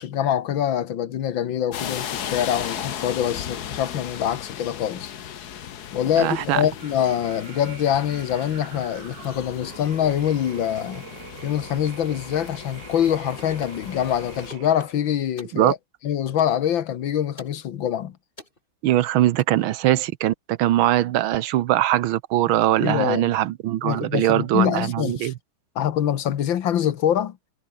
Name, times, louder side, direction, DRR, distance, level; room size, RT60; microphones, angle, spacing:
voice 1, 0.0-5.1 5.9-11.1 11.4-15.8 16.0-18.2 22.8-23.3 23.8-25.3 25.8-27.4, left 10 dB, 70° left, 1.9 m, -24 dB
sound 1, 1.7-14.5, left 9 dB, 55° left, 1.5 m, -36 dB
voice 2, 6.2-6.6 15.5-15.7 18.8-25.3, right 13 dB, 80° right, 1.6 m, -21 dB
sound 2, 6.7-15.1, right 9 dB, 60° right, 1.8 m, -44 dB
sound 3, 13.4-13.8 14.4-15.0 15.4-15.6 16.4-16.6 17.4-17.6 18.4-18.6 19.4-19.5, left 1 dB, 25° left, 5.3 m, -42 dB
omnidirectional pair, 2.2 m